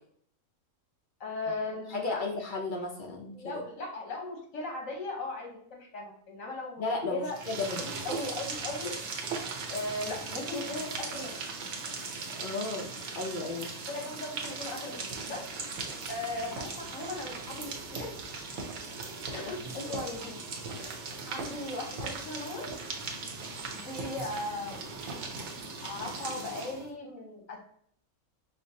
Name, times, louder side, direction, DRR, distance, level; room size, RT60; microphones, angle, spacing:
voice 1, 1.2-2.2 3.3-6.8 7.1-7.4 7.6-9.0 9.7-11.3 13.9-15.5 16.1-18.1 19.3-20.4 21.3-22.7 23.7-25.0 25.8-27.6, left 2 dB, 80° left, -1 dB, 1.5 m, -38 dB
voice 2, 1.9-3.6 6.8-7.9 12.4-13.7, left 3 dB, 55° left, 0 dB, 0.5 m, -34 dB
sound 1, 7.3-26.9, right 4 dB, 65° right, 0.9 m, -39 dB
sound 2, 15.1-26.3, right 2 dB, 85° right, 1.2 m, -45 dB
5.0 x 2.0 x 2.7 m, 0.64 s
omnidirectional pair, 1.4 m